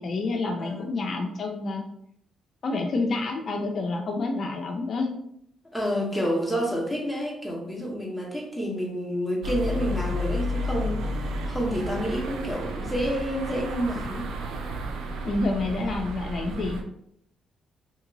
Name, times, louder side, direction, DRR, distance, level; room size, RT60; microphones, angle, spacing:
voice 1, 0.0-1.8 2.6-5.1 15.2-16.8, left 3 dB, 50° left, 2 dB, 0.4 m, -28 dB
voice 2, 0.6-0.9 5.7-14.3, equal, ahead, -2 dB, 0.9 m, -29 dB
sound 1, 9.4-16.8, equal, 80° right, 0.4 m, -32 dB
2.9 x 2.8 x 2.7 m, 0.72 s
cardioid pair, 90°, 0 cm